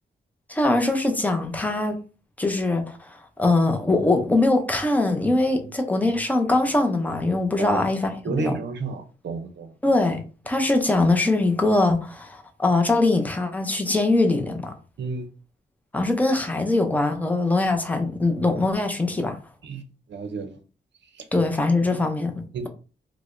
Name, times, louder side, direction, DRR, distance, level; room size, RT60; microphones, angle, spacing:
voice 1, 0.5-2.0 2.4-8.6 9.8-14.7 15.9-19.4 21.3-22.7, left 2 dB, 10° left, 0.5 m, -22 dB
voice 2, 8.2-9.7 15.0-15.3 19.6-19.8 20.1-20.6 21.1-21.3 22.5-22.7, right 4 dB, 70° right, 0.6 m, -31 dB
4.5 x 2.1 x 2.5 m
wide cardioid pair, 175°, 19 cm